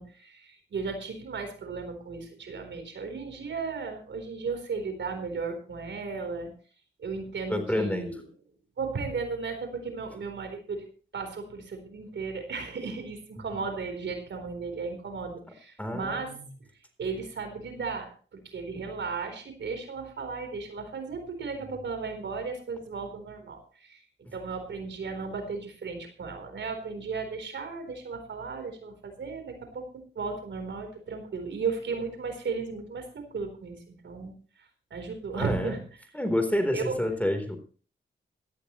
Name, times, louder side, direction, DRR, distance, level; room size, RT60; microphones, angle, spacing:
voice 1, 0.0-6.5 7.0-8.2 8.8-10.9 11.1-16.3 16.6-16.7 17.0-24.0 24.3-33.8 34.0-35.8 36.7-37.0, right 4 dB, 75° right, 6 dB, 4.1 m, -35 dB
voice 2, 7.5-8.1 15.8-16.4 35.3-35.7 36.1-37.6, left 1 dB, 5° left, 6 dB, 3.9 m, -28 dB
17.5 x 13.5 x 3.2 m, 0.39 s
cardioid pair, 75°, 19 cm